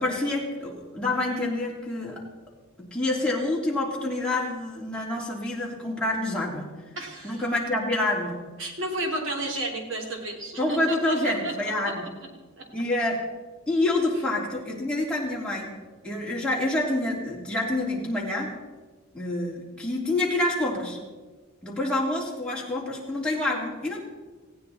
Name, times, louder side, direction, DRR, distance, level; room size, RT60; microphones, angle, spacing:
voice 1, 0.0-2.2 2.8-6.7 7.2-8.4 10.6-12.0 12.7-13.2 13.7-15.7 16.0-18.5 19.1-21.0 21.6-24.0, left 2 dB, 5° left, -4 dB, 3.2 m, -27 dB
voice 2, 6.9-7.4 8.6-11.5 11.8-11.9 12.6-12.7, right 1 dB, 65° right, 1 dB, 3.1 m, -32 dB
19.0 x 16.0 x 4.3 m, 1.3 s
head